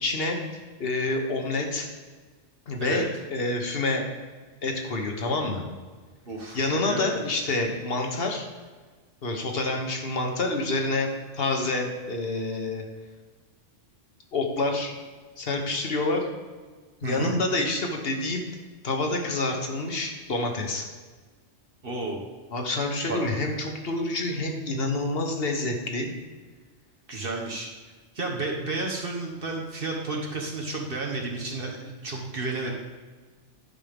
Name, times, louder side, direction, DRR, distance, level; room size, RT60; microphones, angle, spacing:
voice 1, 0.0-1.9 2.7-4.0 4.6-5.6 6.5-8.5 9.2-11.1 11.3-12.8 14.3-14.9 15.4-16.2 17.0-18.4 18.8-20.9 22.5-26.1, left 2 dB, 50° left, 2 dB, 1.3 m, -27 dB
voice 2, 6.3-6.6 6.9-7.1 17.0-17.3 21.8-22.2 23.1-23.2 27.1-27.7 28.1-32.7, right 3 dB, 50° right, 0 dB, 1.3 m, -31 dB
11.0 x 5.4 x 3.6 m, 1.4 s
omnidirectional pair, 1.3 m